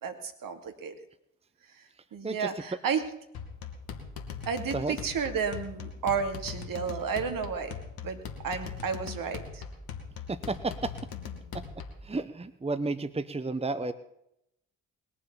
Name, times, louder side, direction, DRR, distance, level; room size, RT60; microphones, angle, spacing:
voice 1, 0.0-0.9 1.7-1.8 2.1-3.0 4.5-7.8 8.0-8.2 8.4-9.6, right 6 dB, 60° right, 7 dB, 2.5 m, -32 dB
sound 1, 3.3-12.1, left 6 dB, 70° left, 2.3 m, -41 dB
voice 2, 10.3-10.9 11.5-11.6 12.0-13.9, right 3 dB, 15° right, 12 dB, 1.1 m, -32 dB
21.0 x 7.2 x 7.0 m, 0.79 s
hypercardioid pair, 40°, 38 cm